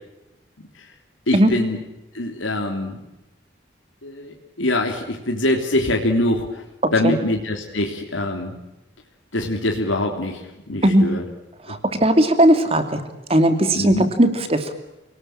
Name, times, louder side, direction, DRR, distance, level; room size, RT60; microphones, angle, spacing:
voice 1, 1.3-1.8 2.1-3.0 4.0-6.6 6.9-8.6 9.3-11.2 11.7-11.8 13.7-14.0, left 1 dB, 85° left, 2 dB, 3.3 m, -24 dB
voice 2, 11.7-13.0 13.3-14.7, right 1 dB, 30° right, 8 dB, 2.9 m, -17 dB
28.5 x 19.5 x 8.9 m, 0.95 s
head